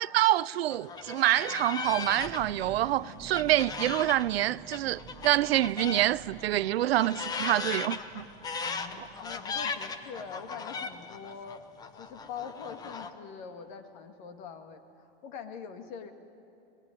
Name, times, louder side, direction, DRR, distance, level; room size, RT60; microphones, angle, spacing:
voice 1, 0.0-8.2 9.0-9.1, right 14 dB, 80° right, 0.6 m, -26 dB
sound 1, 0.7-6.1 6.4-13.1, left 5 dB, 15° left, 0.8 m, -37 dB
sound 2, 1.8-11.2 11.5-11.6 11.9-12.2, right 6 dB, 20° right, 1.2 m, -50 dB
voice 2, 8.6-11.7 11.9-16.1, left 6 dB, 50° left, 2.1 m, -43 dB
26.0 x 20.0 x 9.9 m
supercardioid pair, 160°, 30 cm